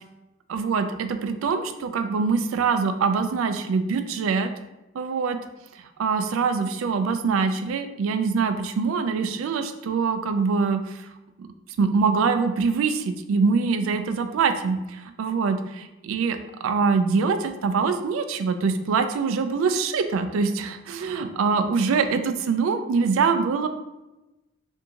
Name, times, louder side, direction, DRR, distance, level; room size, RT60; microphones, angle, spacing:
voice 1, 0.5-4.5 4.9-5.4 6.0-11.1 11.4-11.5 11.8-23.7, right 5 dB, 85° right, 8 dB, 0.3 m, -24 dB
3.5 x 2.6 x 2.8 m, 1.0 s
head